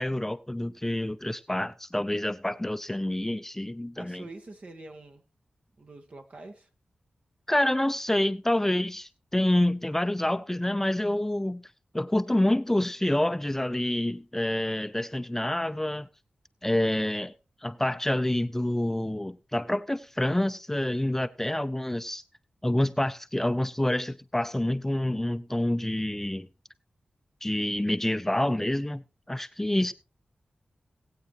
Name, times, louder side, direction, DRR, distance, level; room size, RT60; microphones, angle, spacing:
voice 1, 0.0-4.3 7.5-11.7 11.9-16.1 16.6-17.3 17.6-22.2 22.6-26.5 27.4-29.9, left 1 dB, 10° left, 0.5 m, -27 dB
voice 2, 3.9-5.2 5.8-6.7 29.8-29.9, right 2 dB, 55° right, 1.5 m, -46 dB
18.5 x 8.3 x 3.0 m
cardioid pair, 60°, 3 cm